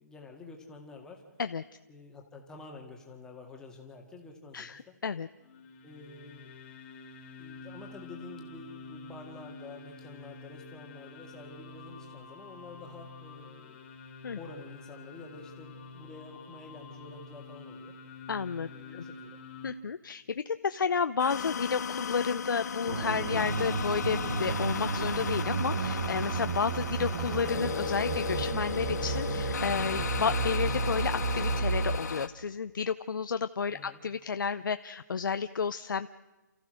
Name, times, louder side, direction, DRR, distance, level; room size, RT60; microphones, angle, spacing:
voice 1, 0.0-1.2 1.9-5.0 5.8-6.5 7.4-13.8 14.4-18.0 18.7-19.4 27.1-27.2 33.7-34.0, left 3 dB, 5° left, 1 dB, 1.9 m, -48 dB
voice 2, 4.5-5.3 14.2-14.4 18.3-18.7 19.6-36.1, left 6 dB, 80° left, 11 dB, 0.6 m, -31 dB
sound 1, 5.4-19.7, left 3 dB, 30° left, 2.3 m, -48 dB
sound 2, 21.2-32.3, left 7 dB, 55° left, 1.2 m, -35 dB
sound 3, 22.9-32.0, right 5 dB, 50° right, 1.1 m, -32 dB
29.0 x 14.5 x 6.4 m, 1.1 s
hypercardioid pair, 165°, 11 cm